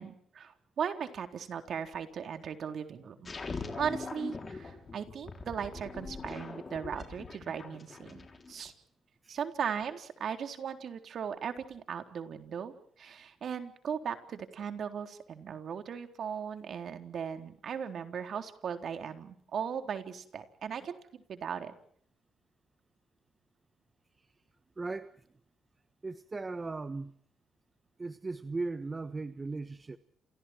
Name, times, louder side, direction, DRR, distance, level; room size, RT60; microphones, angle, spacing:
voice 1, 0.0-3.3 3.8-8.7 9.3-21.7, right 7 dB, 60° right, 7 dB, 3.8 m, -38 dB
sound 1, 3.2-8.7, left 3 dB, 30° left, 6.2 m, -42 dB
voice 2, 24.8-25.1 26.0-27.1 28.0-30.0, right 3 dB, 25° right, 11 dB, 1.3 m, -37 dB
29.5 x 28.5 x 4.5 m, 0.62 s
cardioid pair, 90°, 0 cm